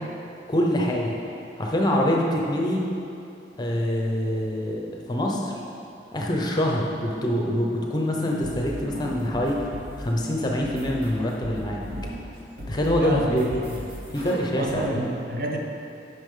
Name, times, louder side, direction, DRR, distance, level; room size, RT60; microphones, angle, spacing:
voice 1, 0.5-1.2 1.6-2.9 3.6-5.5 6.1-9.6 10.0-11.8 12.7-13.5 14.1-15.1, equal, 25° left, -1 dB, 0.7 m, -25 dB
sound 1, 8.1-10.2 10.6-12.3 12.6-14.7, right 1 dB, 70° right, 1.8 m, -37 dB
voice 2, 13.0-13.9 14.6-15.6, equal, 55° right, 0 dB, 0.7 m, -30 dB
8.8 x 5.6 x 3.8 m, 2.7 s
head